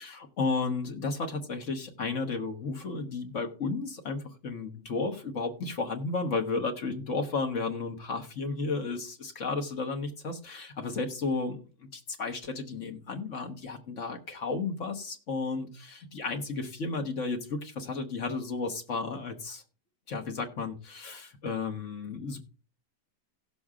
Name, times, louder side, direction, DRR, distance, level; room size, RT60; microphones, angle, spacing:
voice 1, 0.0-19.6 20.1-22.4, left 4 dB, 50° left, 3 dB, 1.5 m, -33 dB
18.0 x 6.9 x 2.4 m, 0.37 s
omnidirectional pair, 1.8 m